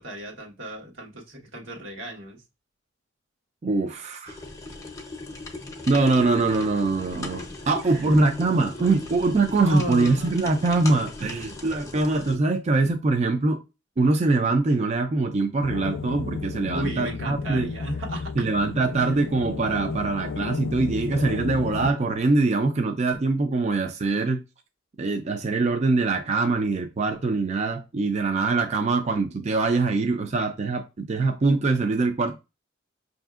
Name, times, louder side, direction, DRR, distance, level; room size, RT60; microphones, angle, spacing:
voice 1, 0.0-2.4 7.8-9.0 9.6-10.5 16.7-18.5 19.0-19.1, right 1 dB, 90° right, 1.2 m, -35 dB
voice 2, 3.6-4.3 5.9-13.6 14.0-17.7 18.4-24.4 25.0-32.3, right 3 dB, 35° right, 0.4 m, -23 dB
sound 1, 4.3-12.4, left 2 dB, 15° left, 0.6 m, -38 dB
sound 2, 15.6-21.9, left 4 dB, 75° left, 0.3 m, -33 dB
5.6 x 2.6 x 2.4 m
head